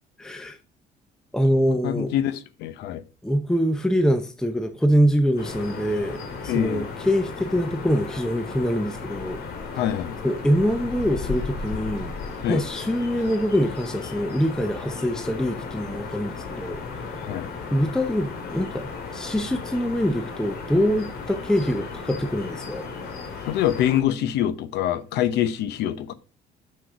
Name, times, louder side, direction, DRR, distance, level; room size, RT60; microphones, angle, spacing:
voice 1, 0.2-0.6 1.3-2.1 3.2-9.4 10.2-12.1 12.5-17.2 17.7-22.9, equal, 5° left, 0.7 m, -24 dB
voice 2, 1.5-3.0 6.5-6.8 9.7-10.1 12.4-12.6 17.2-17.5 23.5-26.1, left 11 dB, 80° left, 0.8 m, -25 dB
sound 1, 5.4-24.0, left 4 dB, 65° left, 2.2 m, -35 dB
6.4 x 6.3 x 5.0 m
cardioid pair, 110°, 17 cm